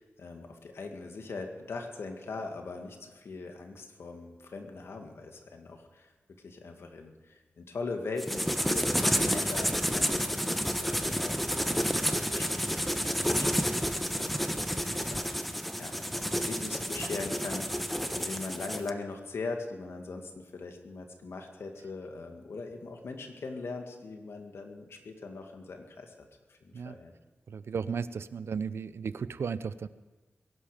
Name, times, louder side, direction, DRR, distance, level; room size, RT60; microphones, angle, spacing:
voice 1, 0.0-6.1 6.4-14.5 14.9-26.1 26.5-27.1, left 3 dB, 80° left, 4 dB, 2.1 m, -41 dB
sound 1, 8.2-18.9, equal, ahead, 1.2 m, -30 dB
voice 2, 27.5-29.9, right 6 dB, 80° right, 15 dB, 0.6 m, -35 dB
22.0 x 11.5 x 5.1 m, 1.3 s
cardioid pair, 70°, 4 cm